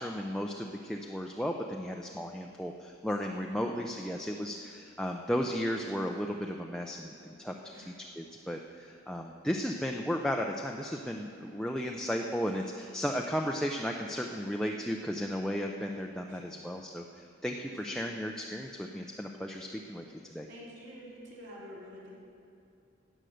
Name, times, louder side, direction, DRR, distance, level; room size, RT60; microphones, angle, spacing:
voice 1, 0.0-17.0 17.4-20.0 20.3-20.5, equal, 5° left, 1 dB, 0.4 m, -34 dB
voice 2, 3.5-3.8 7.6-7.9 11.2-11.5 16.2-16.6 17.6-18.0 20.5-22.1, equal, 60° right, -6 dB, 3.6 m, -49 dB
14.5 x 8.9 x 6.4 m, 2.6 s
head